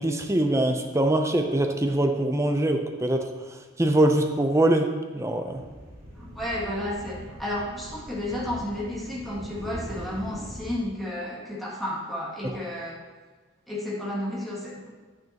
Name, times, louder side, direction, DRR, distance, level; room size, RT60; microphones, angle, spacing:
voice 1, 0.0-3.2 3.8-5.6, right 1 dB, 15° right, 4 dB, 0.6 m, -23 dB
sound 1, 5.5-10.7, equal, 45° right, 3.2 m, -41 dB
voice 2, 6.2-13.0 13.7-14.9, left 1 dB, ahead, -7 dB, 2.3 m, -32 dB
11.0 x 9.2 x 3.0 m, 1.4 s
head